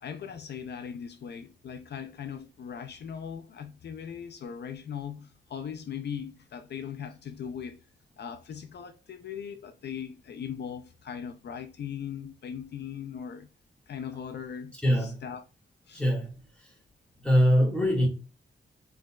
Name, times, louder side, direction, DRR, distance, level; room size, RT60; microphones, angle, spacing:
voice 1, 0.0-7.8 8.2-13.5 13.9-14.7 15.0-15.4 15.9-16.0, left 8 dB, 60° left, 0.5 m, -39 dB
voice 2, 14.7-15.2 15.9-16.7 17.2-18.1, equal, 5° left, 1.7 m, -24 dB
5.1 x 4.1 x 2.3 m
wide cardioid pair, 170°, 19 cm